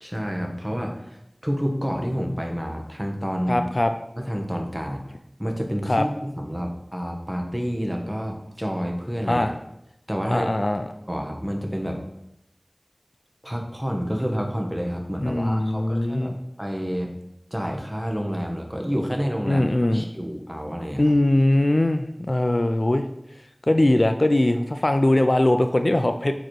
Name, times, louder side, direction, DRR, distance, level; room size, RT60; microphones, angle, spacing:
voice 1, 0.0-3.6 4.2-5.0 5.4-9.5 10.1-10.5 11.1-12.0 13.4-16.3 16.6-17.1 17.5-19.6 19.9-21.1, equal, 10° right, 2 dB, 1.0 m, -29 dB
voice 2, 3.5-3.9 5.9-6.1 9.3-9.5 10.3-10.9 15.2-16.4 19.5-20.0 21.0-23.1 23.7-26.3, left 1 dB, 55° left, 7 dB, 0.4 m, -21 dB
7.5 x 3.0 x 4.5 m, 0.82 s
wide cardioid pair, 40°, 0 cm